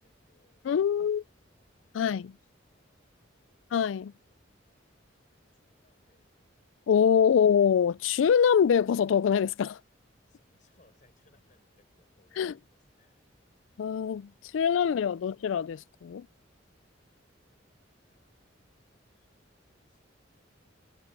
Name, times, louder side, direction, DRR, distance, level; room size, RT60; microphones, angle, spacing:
voice 1, 0.0-2.1 2.4-3.1 3.4-3.7 4.2-4.4 5.5-6.5 10.2-13.2 14.3-15.6 18.1-18.8 19.1-19.6 19.8-20.5, left 2 dB, 40° left, 5.7 m, -70 dB
voice 2, 0.6-1.2 1.9-2.3 3.7-4.1 6.9-9.8 12.4-12.5 13.8-16.3, left 7 dB, 85° left, 0.3 m, -24 dB
head